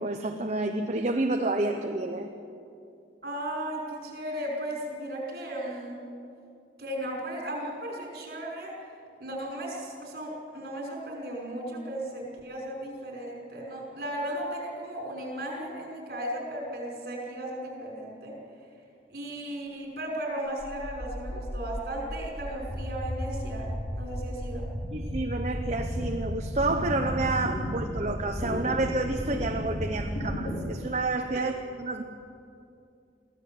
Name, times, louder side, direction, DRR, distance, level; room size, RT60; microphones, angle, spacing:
voice 1, 0.0-2.3 24.9-31.5 31.8-32.0, right 2 dB, 40° right, 4 dB, 0.9 m, -29 dB
voice 2, 3.2-6.0 6.8-8.8 9.2-18.4 19.1-24.7 31.3-31.4, right 1 dB, 55° right, -1 dB, 5.6 m, -36 dB
sound 1, 20.6-30.6, equal, 75° left, 5.2 m, -34 dB
23.5 x 15.5 x 7.9 m, 2.5 s
head